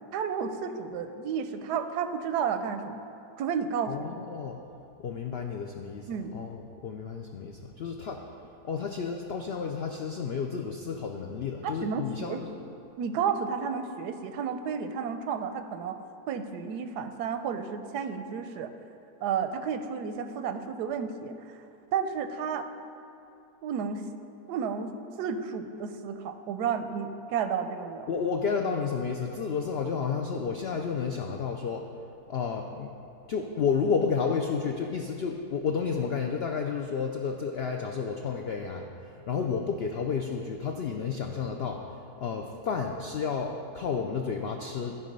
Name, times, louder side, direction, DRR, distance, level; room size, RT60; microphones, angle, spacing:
voice 1, 0.1-3.1 3.4-3.9 6.1-6.3 11.6-12.7 13.0-16.0 16.3-18.7 19.2-21.6 21.9-22.7 23.6-24.0 24.5-24.9 25.2-28.1, right 6 dB, 90° right, 8 dB, 1.2 m, -32 dB
voice 2, 3.9-4.6 5.0-8.2 8.6-12.5 28.1-31.9 32.3-32.9 33.3-45.0, left 5 dB, 85° left, 3 dB, 0.5 m, -31 dB
13.0 x 4.9 x 5.3 m, 2.7 s
omnidirectional pair, 1.7 m